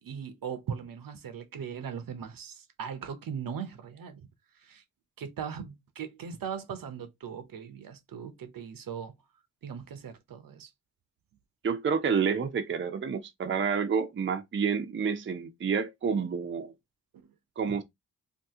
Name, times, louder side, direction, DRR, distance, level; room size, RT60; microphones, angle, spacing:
voice 1, 0.0-4.3 4.6-4.8 5.2-9.1 9.6-10.7 17.2-17.3, right 7 dB, 75° right, 0.7 m, -39 dB
voice 2, 11.6-16.7 17.6-17.8, right 6 dB, 35° right, 0.6 m, -29 dB
2.8 x 2.6 x 3.5 m
cardioid pair, 75°, 34 cm